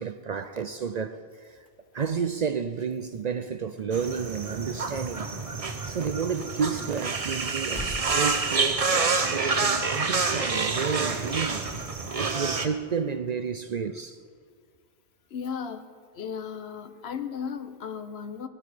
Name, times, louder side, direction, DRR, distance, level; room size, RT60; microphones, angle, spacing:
voice 1, 0.0-1.7 1.9-5.3 5.8-11.7 12.2-14.2, right 6 dB, 50° right, 0.5 m, -31 dB
sound 1, 1.7-11.0 11.2-12.5 12.8-14.3, left 1 dB, 45° left, 2.3 m, -47 dB
sound 2, 3.9-12.7, right 4 dB, 35° right, 0.9 m, -28 dB
voice 2, 15.3-15.9 16.1-18.5, left 7 dB, 80° left, 1.1 m, -35 dB
18.0 x 11.5 x 5.0 m
omnidirectional pair, 1.1 m